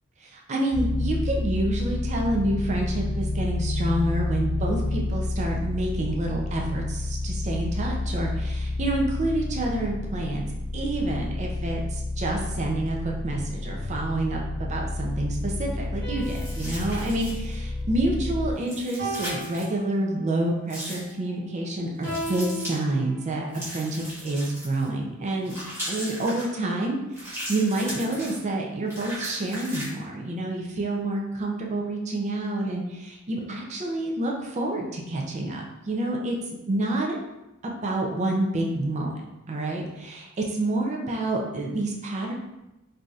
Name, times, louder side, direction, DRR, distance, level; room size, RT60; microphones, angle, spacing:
voice 1, 0.2-10.4 10.7-25.5 25.9-27.0 27.2-36.3 36.7-37.2 37.6-39.2 39.5-42.3, right 1 dB, 35° right, 0 dB, 0.4 m, -28 dB
sound 1, 0.7-18.5, left 2 dB, 45° left, 0.4 m, -30 dB
sound 2, 16.0-18.4 19.0-20.5 22.0-23.7, right 1 dB, 55° right, 1.5 m, -37 dB
sound 3, 16.2-17.5 18.6-19.7 20.7-21.1 22.0-22.8 23.5-24.9 25.4-26.5 27.1-28.4 28.9-29.9, equal, 10° right, 1.2 m, -37 dB
3.3 x 2.6 x 2.4 m, 0.96 s
head